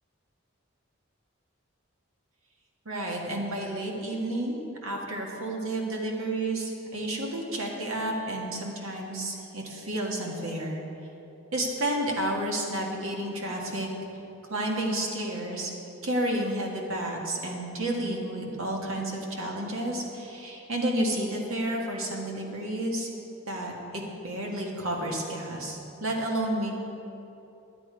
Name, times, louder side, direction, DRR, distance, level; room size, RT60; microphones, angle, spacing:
voice 1, 2.8-10.8 11.5-13.9 14.4-15.7 16.0-23.1 23.5-26.8, right 1 dB, 85° right, 0 dB, 1.7 m, -31 dB
11.0 x 8.9 x 4.9 m, 2.9 s
head